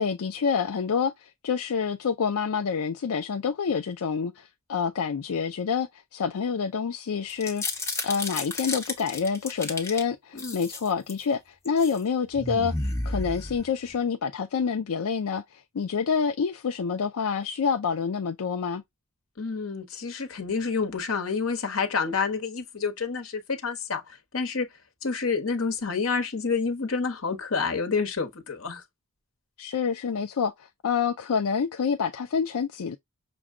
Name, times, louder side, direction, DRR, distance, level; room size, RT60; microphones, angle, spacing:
voice 1, 0.0-7.6 8.0-12.7 13.1-18.8 29.6-33.0, left 6 dB, 85° left, 0.4 m, -27 dB
sound 1, 7.3-10.0 10.4-11.2 11.6-12.0 12.3-13.9, left 2 dB, 10° left, 1.1 m, -32 dB
voice 2, 19.4-24.7 25.0-28.8, left 5 dB, 70° left, 1.1 m, -28 dB
6.1 x 2.3 x 3.6 m
head